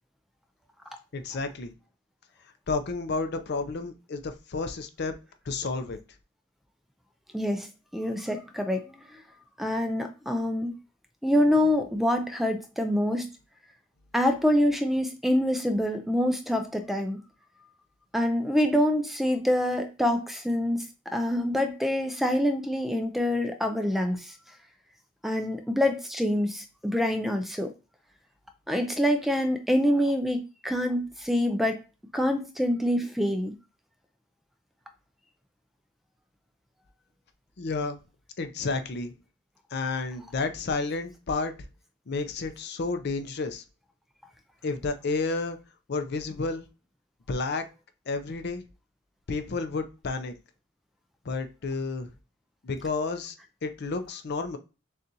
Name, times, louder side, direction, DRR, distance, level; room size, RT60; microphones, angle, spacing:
voice 1, 1.1-1.7 2.7-5.1 5.5-6.0 37.6-38.0 38.4-39.1 39.7-41.5 42.1-43.6 44.6-45.6 45.9-46.7 47.3-47.7 48.1-48.6 49.3-50.3 51.2-52.1 52.6-53.4 53.6-54.6, left 3 dB, 55° left, 9 dB, 0.5 m, -31 dB
voice 2, 7.3-9.2 9.6-10.7 11.2-13.3 14.1-17.2 18.1-20.8 21.1-24.3 25.2-27.7 28.7-31.8 32.1-33.6, left 1 dB, ahead, 6 dB, 0.4 m, -26 dB
6.5 x 2.4 x 2.7 m, 0.31 s
head